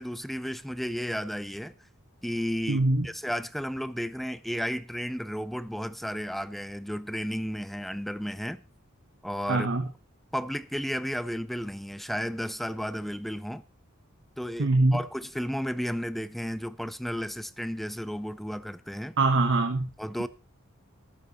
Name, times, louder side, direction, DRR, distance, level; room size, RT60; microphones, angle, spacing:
voice 1, 0.0-1.8 2.2-8.6 9.2-9.7 10.3-13.6 14.4-19.2 20.0-20.3, equal, ahead, 0.5 m, -33 dB
voice 2, 2.7-3.1 9.5-9.9 14.6-15.0 19.2-19.9, right 2 dB, 65° right, 1.3 m, -23 dB
13.0 x 10.5 x 4.2 m
head